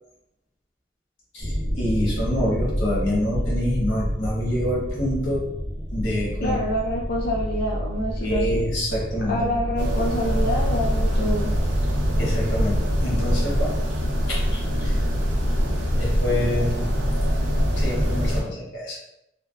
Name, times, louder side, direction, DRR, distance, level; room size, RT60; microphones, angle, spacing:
voice 1, 1.3-5.4 5.9-6.6 8.2-9.5 12.2-13.9 14.3-14.9 15.9-16.7 17.8-19.0, left 1 dB, 90° left, -4 dB, 1.1 m, -26 dB
sound 1, 1.4-10.8, equal, 15° right, 0.8 m, -29 dB
voice 2, 6.4-8.6 9.3-11.5, left 1 dB, 55° left, -3 dB, 0.4 m, -26 dB
sound 2, 9.8-18.4, equal, 90° right, 0.6 m, -23 dB
3.3 x 2.0 x 2.4 m, 0.82 s
head